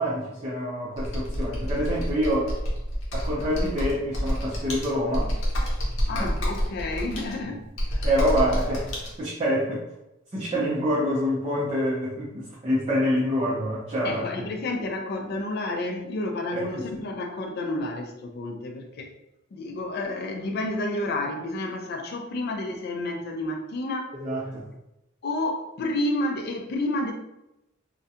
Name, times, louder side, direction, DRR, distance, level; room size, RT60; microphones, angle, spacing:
voice 1, 0.0-2.5 3.1-5.3 6.1-6.3 8.0-8.9 9.2-9.8 10.3-14.5 16.5-17.0 24.1-24.7, equal, 30° right, -7 dB, 0.5 m, -26 dB
Computer keyboard, 1.0-9.1, equal, 80° left, 0.7 m, -28 dB
voice 2, 6.1-8.1 14.0-19.1 19.5-24.1 25.2-27.1, left 2 dB, 50° left, 3 dB, 0.4 m, -30 dB
2.3 x 2.1 x 2.7 m, 0.89 s
head